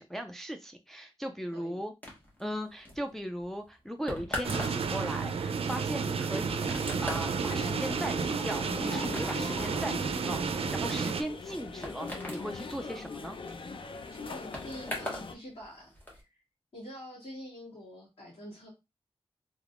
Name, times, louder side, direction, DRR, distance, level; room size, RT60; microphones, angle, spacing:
voice 1, 0.0-1.9 2.4-6.6 7.0-13.4, equal, 5° left, 5 dB, 0.3 m, -38 dB
sound 1, 2.0-15.3 15.6-16.2, left 1 dB, 20° left, 1.3 m, -42 dB
sound 2, 4.4-11.2, right 5 dB, 75° right, 0.4 m, -31 dB
sound 3, 6.5-15.3, left 4 dB, 60° left, 0.5 m, -42 dB
voice 2, 14.1-16.4 16.7-18.7, equal, 85° left, -8 dB, 2.0 m, -46 dB
3.4 x 3.1 x 2.4 m, 0.25 s
wide cardioid pair, 100°, 10 cm